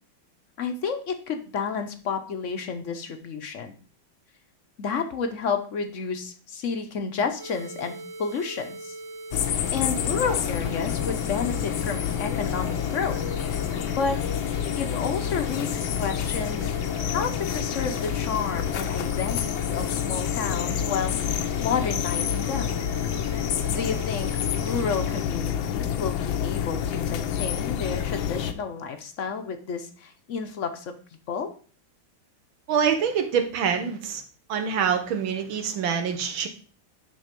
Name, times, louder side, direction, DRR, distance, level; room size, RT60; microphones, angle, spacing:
voice 1, 0.6-3.8 4.8-8.9 9.5-13.2 13.9-14.2 14.5-16.7 17.0-21.1 21.6-22.8 23.7-30.9 31.3-31.5, left 5 dB, 55° left, 7 dB, 0.8 m, -31 dB
sound 1, 7.4-25.2, right 2 dB, 30° right, 0.4 m, -40 dB
sound 2, 9.3-28.5, left 9 dB, 75° left, 1.4 m, -28 dB
voice 2, 32.7-34.2 34.5-36.5, right 7 dB, 75° right, 6 dB, 1.8 m, -25 dB
10.5 x 3.8 x 5.2 m, 0.41 s
omnidirectional pair, 2.2 m